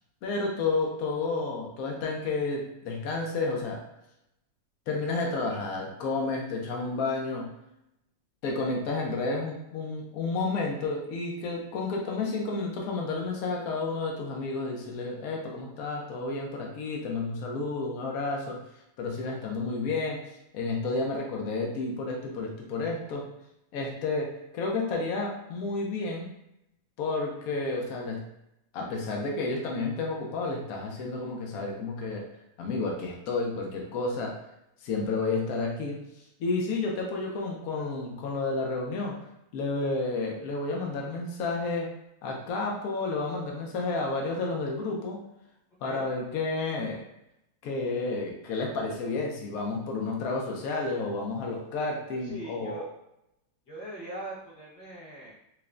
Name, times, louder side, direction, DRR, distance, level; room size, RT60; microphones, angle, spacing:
voice 1, 0.2-3.8 4.9-7.5 8.4-18.6 19.0-20.2 20.5-23.3 23.7-26.3 27.0-28.2 28.7-32.3 32.6-34.4 34.8-36.0 36.4-39.2 39.5-41.9 42.2-45.2 45.8-47.0 47.6-52.9, left 3 dB, 85° left, 0 dB, 0.7 m, -31 dB
voice 2, 52.2-52.9 53.7-55.3, right 1 dB, 55° left, -5 dB, 1.6 m, -41 dB
5.6 x 2.1 x 2.5 m, 0.83 s
omnidirectional pair, 2.4 m